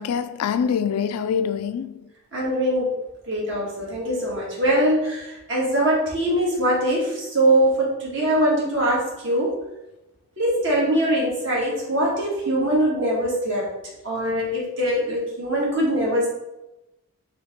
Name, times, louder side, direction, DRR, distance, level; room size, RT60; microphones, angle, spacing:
voice 1, 0.0-2.1, left 7 dB, 85° left, 0.3 m, -25 dB
voice 2, 2.3-2.9 3.3-9.5 10.4-13.7 14.0-16.3, right 1 dB, 55° right, 1.6 m, -22 dB
4.3 x 2.8 x 4.3 m
head